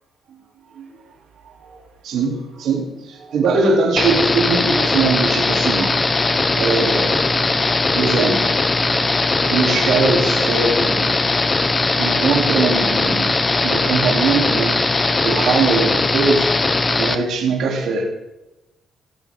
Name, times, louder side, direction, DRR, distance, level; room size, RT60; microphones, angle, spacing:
voice 1, 1.4-1.8 2.0-6.0 6.5-7.3 7.9-8.5 9.4-11.2 11.9-14.8 15.2-16.5 17.0-18.1, right 4 dB, 75° right, -1 dB, 2.9 m, -21 dB
sound 1, 4.0-17.2, left 3 dB, 25° left, 1.0 m, -19 dB
15.5 x 12.0 x 3.6 m, 1.0 s
cardioid pair, 90°, 0 cm